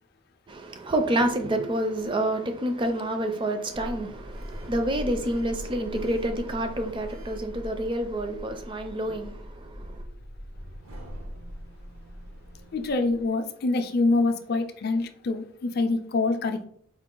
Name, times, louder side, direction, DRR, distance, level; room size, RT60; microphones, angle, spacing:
voice 1, 0.5-10.0, right 1 dB, 20° right, 0.4 m, -28 dB
Sliding door, 3.7-13.2, equal, 75° right, 0.8 m, -41 dB
voice 2, 12.7-16.7, left 3 dB, 45° left, 0.4 m, -25 dB
4.6 x 2.3 x 3.7 m
head